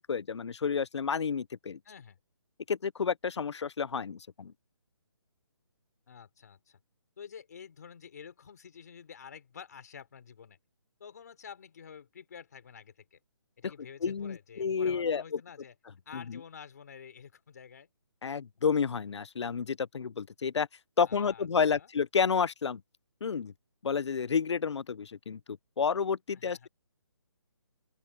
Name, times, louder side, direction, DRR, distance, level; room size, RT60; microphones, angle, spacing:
voice 1, 0.1-1.8 2.7-4.5 14.0-15.2 16.1-16.4 18.2-20.7 21.0-22.8 23.2-23.5 23.8-26.7, left 6 dB, 80° left, 0.5 m, -30 dB
voice 2, 1.8-2.2 6.1-6.8 7.2-10.6 11.0-13.2 13.6-15.7 16.0-17.9 21.0-21.9 26.3-26.7, left 7 dB, 40° left, 3.4 m, -49 dB
open air
hypercardioid pair, 175°, 14 cm